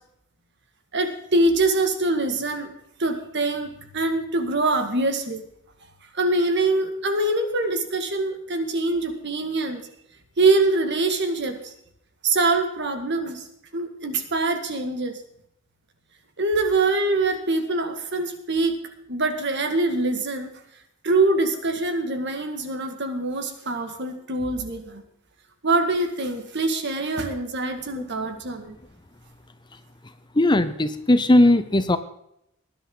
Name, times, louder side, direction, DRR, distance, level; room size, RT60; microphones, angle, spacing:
voice 1, 0.9-2.7 3.0-5.4 6.1-9.8 10.4-11.7 12.2-13.5 13.7-15.1 16.4-18.7 19.1-20.5 21.0-25.0 25.6-28.8, right 2 dB, 55° right, 6 dB, 2.0 m, -24 dB
voice 2, 30.4-32.0, left 1 dB, 20° left, 12 dB, 0.7 m, -18 dB
19.5 x 11.0 x 3.9 m, 0.76 s
head